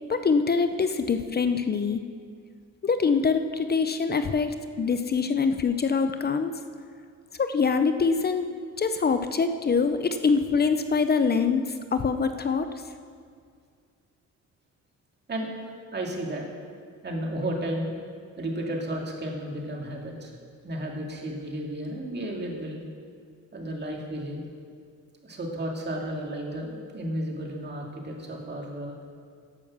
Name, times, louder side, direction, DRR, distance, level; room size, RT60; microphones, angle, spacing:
voice 1, 0.1-2.0 2.8-6.5 7.4-8.5 8.8-12.7, left 5 dB, 35° left, 9 dB, 0.6 m, -24 dB
voice 2, 15.9-16.4 17.0-17.9 18.4-20.3 20.6-22.8 23.5-24.4 25.2-28.9, right 1 dB, 35° right, 0 dB, 2.2 m, -33 dB
11.0 x 6.4 x 7.2 m, 2.1 s
cardioid pair, 90°, 30 cm